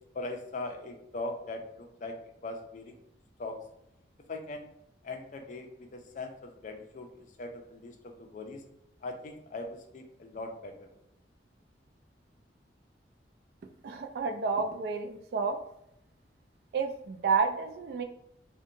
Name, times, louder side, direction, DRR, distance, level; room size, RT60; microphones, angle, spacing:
voice 1, 0.1-2.1 2.4-3.0 3.4-3.6 4.3-4.7 5.0-8.6 9.0-10.9, left 2 dB, 45° left, 4 dB, 0.4 m, -40 dB
voice 2, 13.8-15.6 16.7-18.0, right 5 dB, 60° right, 5 dB, 0.3 m, -30 dB
2.7 x 2.2 x 2.6 m, 0.82 s
head